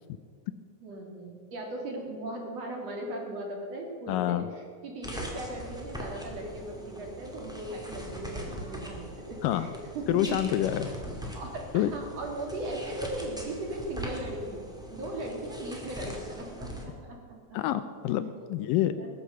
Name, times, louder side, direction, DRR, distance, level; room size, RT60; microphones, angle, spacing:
voice 1, 0.8-9.7 9.9-10.4 10.7-10.8 11.3-14.6 14.9-17.2 19.0-19.1, right 1 dB, 50° right, 1 dB, 2.8 m, -38 dB
voice 2, 4.1-4.5 9.4-9.7 10.1-10.9 11.7-11.9 17.5-18.9, left 12 dB, 80° left, 11 dB, 2.0 m, -27 dB
sound 1, 5.0-16.8, equal, ahead, 1.0 m, -41 dB
20.5 x 8.0 x 6.8 m, 2.1 s
omnidirectional pair, 4.4 m